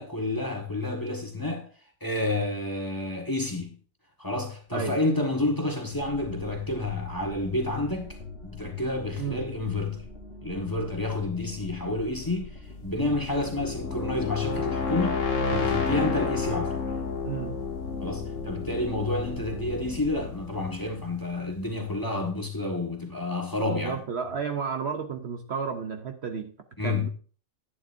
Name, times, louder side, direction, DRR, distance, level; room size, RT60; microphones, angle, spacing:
voice 1, 0.0-1.6 2.0-3.7 4.2-8.2 8.4-10.0 10.4-12.5 12.8-15.2 15.5-16.8 18.0-24.0 26.8-27.1, left 2 dB, 15° left, 1.5 m, -29 dB
sound 1, 5.9-20.4, left 2 dB, 50° left, 1.4 m, -44 dB
sound 2, 12.8-21.6, left 5 dB, 70° left, 1.6 m, -31 dB
voice 2, 17.2-17.5 23.6-26.5 26.8-27.1, right 6 dB, 55° right, 1.0 m, -32 dB
11.0 x 9.2 x 2.6 m
omnidirectional pair, 1.4 m